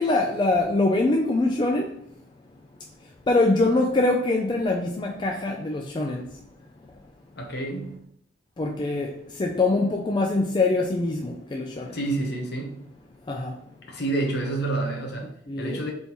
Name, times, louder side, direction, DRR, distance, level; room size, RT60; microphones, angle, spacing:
voice 1, 0.0-1.9 3.3-6.2 8.6-9.1 9.4-11.9 13.3-13.6 15.5-15.8, left 2 dB, 25° left, 0.3 m, -23 dB
voice 2, 7.4-8.0 11.9-12.8 13.9-15.3 15.6-15.9, right 2 dB, 55° left, 0.9 m, -28 dB
4.0 x 3.6 x 2.9 m
head